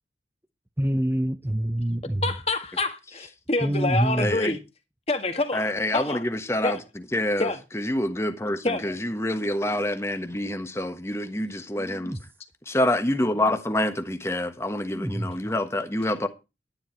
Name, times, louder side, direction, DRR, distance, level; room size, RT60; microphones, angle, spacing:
voice 1, 0.8-2.2 3.6-4.3 11.8-12.2 14.9-15.3, right 1 dB, 10° right, 0.7 m, -26 dB
voice 2, 2.2-4.6 5.1-6.3 6.6-6.8 7.4-7.6 8.6-9.0, left 2 dB, 35° left, 1.7 m, -27 dB
voice 3, 4.2-4.5 5.5-6.8 7.1-7.5 7.7-12.2 12.7-16.3, left 1 dB, 15° left, 1.2 m, -27 dB
11.5 x 10.5 x 4.4 m
head